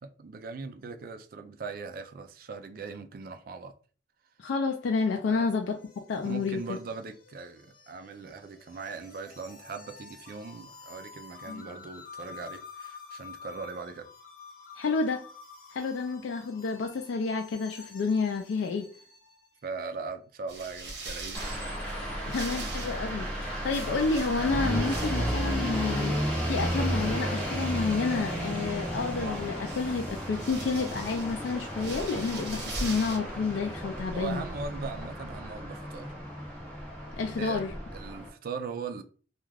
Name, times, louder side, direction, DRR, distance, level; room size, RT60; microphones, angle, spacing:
voice 1, 0.0-3.7 5.3-5.5 6.2-14.1 19.6-21.7 34.1-36.1 37.4-37.6 37.9-39.0, right 4 dB, 55° right, 0.3 m, -40 dB
voice 2, 4.4-5.8 6.1-6.6 11.5-11.7 14.7-15.3 15.7-18.8 22.3-34.4 37.1-37.7, left 4 dB, 85° left, 0.3 m, -30 dB
sound 1, 5.0-19.6, left 5 dB, 50° left, 0.7 m, -50 dB
sound 2, 20.5-33.2, right 2 dB, 70° right, 0.9 m, -43 dB
sound 3, 21.3-38.3, equal, 5° left, 0.8 m, -33 dB
2.3 x 2.3 x 3.2 m
head